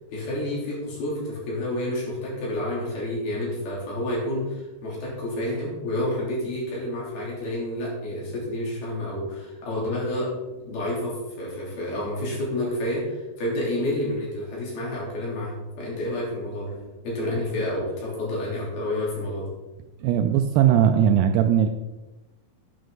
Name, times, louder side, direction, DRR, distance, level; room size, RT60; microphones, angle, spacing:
voice 1, 0.1-19.5, left 1 dB, 60° left, -5 dB, 5.1 m, -29 dB
voice 2, 20.0-21.7, right 9 dB, 85° right, 7 dB, 2.4 m, -19 dB
10.0 x 9.1 x 3.9 m, 1.1 s
omnidirectional pair, 5.1 m